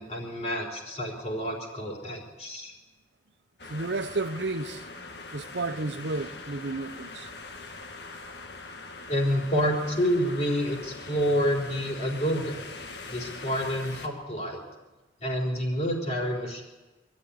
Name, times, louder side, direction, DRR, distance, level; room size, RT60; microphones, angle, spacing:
voice 1, 0.0-2.7 9.1-12.7 13.1-14.6 15.2-16.6, equal, 40° left, 4.1 m, -28 dB
sound 1, 3.6-14.1, left 3 dB, 70° left, 1.8 m, -42 dB
voice 2, 3.7-4.9 5.3-7.3, right 3 dB, 80° right, 0.9 m, -32 dB
25.0 x 12.0 x 9.8 m
head